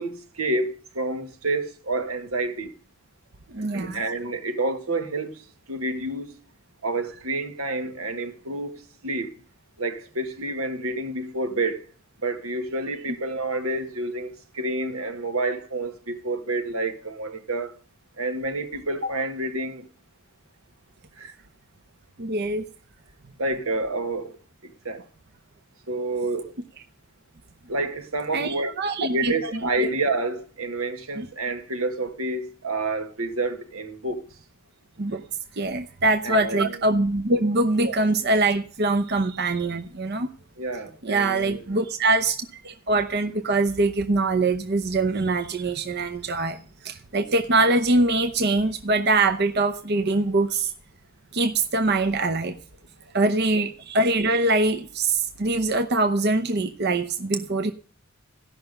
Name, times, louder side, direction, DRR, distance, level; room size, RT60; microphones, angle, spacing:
voice 1, 0.0-2.7 3.6-6.4 6.8-9.3 9.8-11.9 12.2-17.7 18.2-19.9 21.2-21.4 23.4-24.3 24.6-25.0 25.9-26.5 27.7-28.7 29.1-34.3 36.2-36.8 37.8-38.0 40.6-41.6 53.5-53.6, right 2 dB, 85° right, 1.7 m, -29 dB
voice 2, 3.5-4.0 22.2-22.7 28.3-29.9 31.2-31.3 35.0-35.2 35.6-40.3 41.0-50.7 51.3-52.6 53.1-57.7, right 2 dB, 50° right, 0.8 m, -23 dB
15.0 x 5.9 x 6.6 m
head